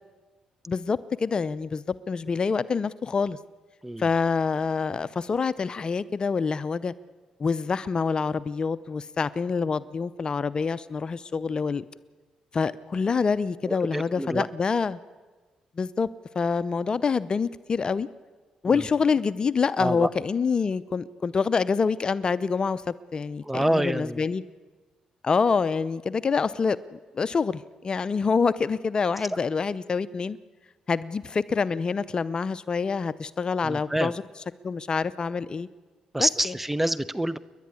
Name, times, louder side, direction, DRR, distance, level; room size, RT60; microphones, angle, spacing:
voice 1, 0.7-3.4 4.0-6.9 7.4-11.8 12.5-15.0 15.8-16.1 16.3-18.1 18.6-22.8 23.1-24.4 25.2-30.4 30.9-34.1 34.6-35.7 36.2-36.5, left 5 dB, 40° left, 17 dB, 0.6 m, -26 dB
voice 2, 13.7-14.4 18.6-18.8 19.8-20.1 23.4-24.2 33.6-34.1 36.1-37.4, right 1 dB, 10° right, 16 dB, 0.9 m, -27 dB
29.0 x 11.5 x 9.7 m, 1.4 s
cardioid pair, 70°, 2 cm